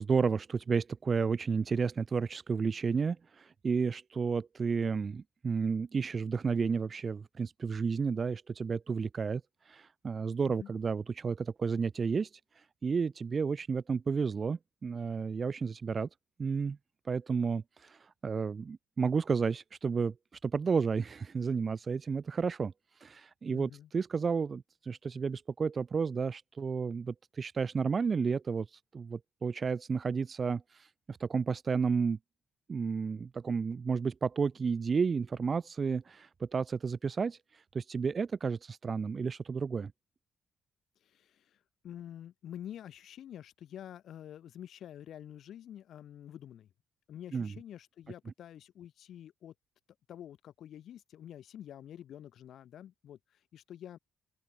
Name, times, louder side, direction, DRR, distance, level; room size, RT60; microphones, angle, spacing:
voice 1, 0.0-9.4 9.7-12.3 12.6-16.1 16.4-16.8 17.1-20.1 20.4-22.7 23.0-32.2 32.7-39.9 47.3-47.5, right 5 dB, 40° right, 0.8 m, -32 dB
voice 2, 23.5-23.9 41.0-46.7 47.1-49.5 50.1-54.0, left 10 dB, 70° left, 1.3 m, -48 dB
open air
cardioid pair, 90°, 0 cm